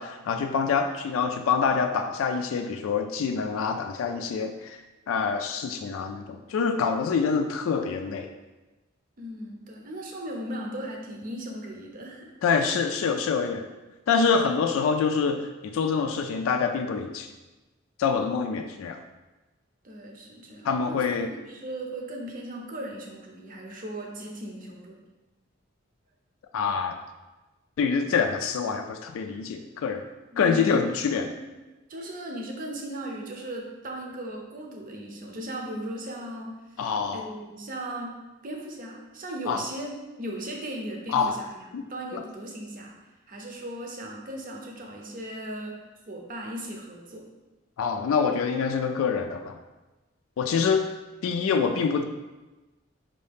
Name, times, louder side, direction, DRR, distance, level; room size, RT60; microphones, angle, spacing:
voice 1, 0.0-4.8 5.1-8.3 12.4-13.7 14.1-17.3 18.0-19.0 20.6-21.3 26.5-27.0 27.8-30.0 30.4-31.3 36.8-37.3 39.5-39.6 41.1-41.4 41.7-41.8 42.1-42.2 47.8-49.6 50.4-50.9 51.2-52.0, left 5 dB, 90° left, 5 dB, 0.3 m, -26 dB
voice 2, 9.2-12.3 19.8-25.0 30.3-30.8 31.2-31.4 31.9-36.5 37.1-38.2 38.4-43.0 43.3-45.8 46.1-47.3, right 1 dB, 45° right, 0 dB, 0.7 m, -37 dB
4.5 x 2.7 x 3.5 m, 1.1 s
head